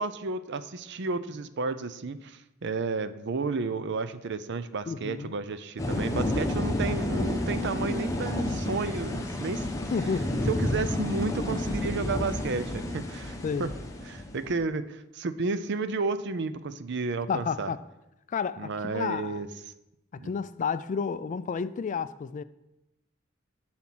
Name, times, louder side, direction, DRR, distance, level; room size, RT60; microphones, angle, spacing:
voice 1, 0.0-9.7 10.5-13.7 14.1-17.7 18.6-19.5 20.2-20.3, right 4 dB, 60° right, 0.6 m, -32 dB
voice 2, 4.9-5.3 9.9-10.4 13.4-13.7 17.3-17.8 18.3-19.4 20.2-22.4, left 6 dB, 40° left, 0.3 m, -31 dB
sound 1, 5.8-14.6, left 1 dB, 15° left, 0.9 m, -30 dB
11.0 x 4.4 x 6.1 m
head